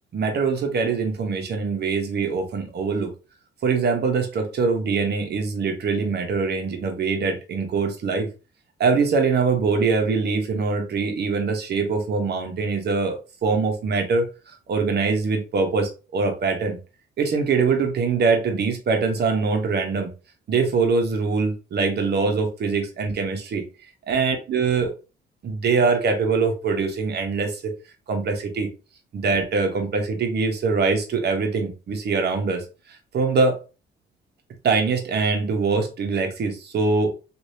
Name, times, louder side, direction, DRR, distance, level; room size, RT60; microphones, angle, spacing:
voice 1, 0.1-3.1 3.6-8.3 8.8-16.8 17.2-20.1 20.5-23.6 24.1-24.9 25.4-27.6 28.1-28.7 29.1-32.6 33.1-33.6 34.6-37.1, right 4 dB, 55° right, 1.0 m, -23 dB
3.2 x 2.6 x 2.7 m
cardioid pair, 90°, 20 cm